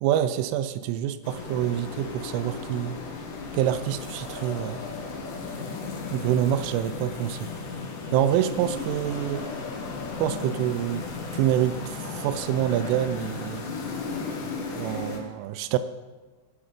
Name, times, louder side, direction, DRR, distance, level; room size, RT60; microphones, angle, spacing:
voice 1, 0.0-3.0 3.5-4.8 6.1-7.5 8.1-9.4 10.2-11.0 11.3-13.7 14.7-15.8, right 11 dB, 85° right, 12 dB, 3.1 m, -26 dB
sound 1, 1.2-15.2, left 4 dB, 65° left, 2.1 m, -35 dB
17.0 x 7.1 x 5.1 m, 1.3 s
omnidirectional pair, 5.7 m